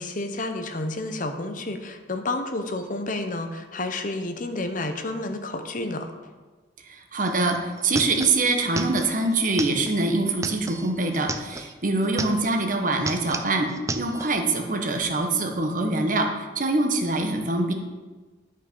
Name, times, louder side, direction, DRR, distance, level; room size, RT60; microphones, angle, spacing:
voice 1, 0.0-6.1, left 2 dB, 45° left, 7 dB, 0.7 m, -30 dB
voice 2, 6.9-13.7 13.9-17.7, right 2 dB, 45° right, 4 dB, 1.1 m, -24 dB
sound 1, 7.3-7.4 7.6-11.7 12.0-12.7 12.9-14.3, right 3 dB, 15° right, 0.4 m, -33 dB
11.0 x 5.3 x 5.3 m, 1.3 s
head